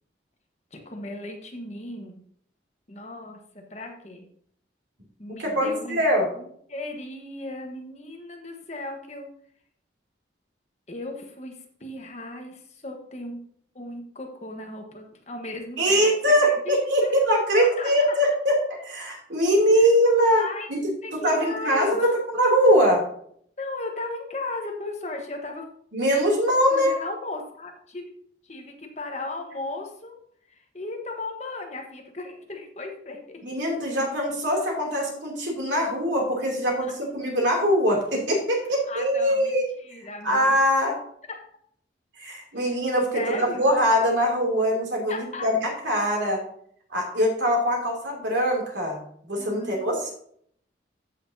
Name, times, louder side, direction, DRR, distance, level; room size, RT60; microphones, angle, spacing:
voice 1, 0.7-2.2 2.9-4.3 5.2-6.0 6.3-9.3 10.9-13.4 13.7-16.8 17.0-17.2 17.6-17.9 19.7-19.9 20.3-20.7 21.0-22.2 23.6-25.6 26.7-28.1 28.4-30.2 30.5-33.6 38.9-39.5 39.8-40.6 41.3-41.4 42.5-42.8 43.1-43.6 45.1-45.5 49.3-50.0, left 2 dB, 35° left, 3 dB, 1.2 m, -36 dB
voice 2, 5.3-6.3 15.8-20.8 21.1-23.0 25.9-27.0 33.4-39.7 40.2-41.0 42.2-46.4 46.9-49.0 49.3-50.1, equal, 85° right, 0 dB, 2.9 m, -22 dB
14.5 x 5.8 x 2.8 m, 0.65 s
head